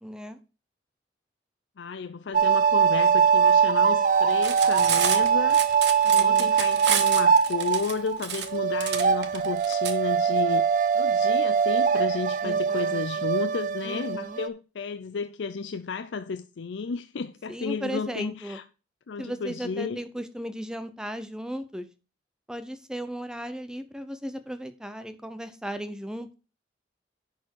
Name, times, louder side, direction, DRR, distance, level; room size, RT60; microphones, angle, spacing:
voice 1, 0.0-0.4 6.0-6.5 12.4-13.3 13.8-14.4 17.5-18.6 19.2-21.9 22.5-26.3, equal, 5° right, 0.7 m, -36 dB
voice 2, 1.8-5.7 6.1-10.7 10.9-18.6 19.1-20.0, left 5 dB, 90° left, 0.5 m, -33 dB
sound 1, 2.3-8.2 8.5-14.5, right 7 dB, 50° right, 0.5 m, -22 dB
Cutlery silverware, 4.3-9.9, right 8 dB, 70° right, 1.1 m, -30 dB
10.5 x 4.4 x 4.5 m
head